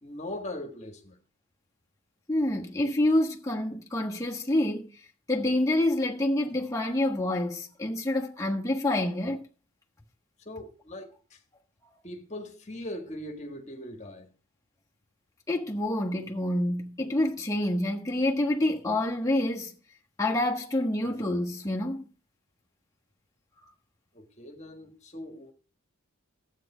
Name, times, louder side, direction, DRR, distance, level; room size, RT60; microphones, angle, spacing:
voice 1, 0.0-1.2 10.4-11.4 12.0-14.3 24.1-25.5, left 1 dB, 30° left, 1.6 m, -40 dB
voice 2, 2.3-4.9 5.3-9.4 15.5-19.8 20.2-22.0, left 1 dB, 15° left, 1.3 m, -27 dB
12.5 x 8.5 x 4.9 m
head